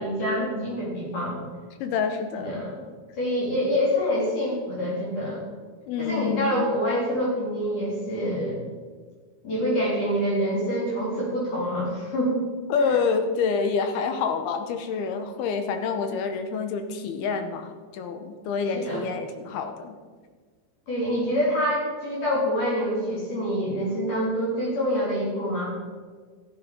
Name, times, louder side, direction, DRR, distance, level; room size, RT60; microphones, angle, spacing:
voice 1, 0.0-1.4 2.4-2.8 3.2-5.4 6.0-8.6 9.4-12.4 18.7-19.0 20.9-25.7, equal, 50° left, -5 dB, 4.8 m, -26 dB
voice 2, 1.8-2.7 5.9-6.6 12.7-20.0, left 5 dB, 75° left, 7 dB, 2.5 m, -27 dB
13.5 x 9.4 x 5.3 m, 1.5 s
omnidirectional pair, 5.1 m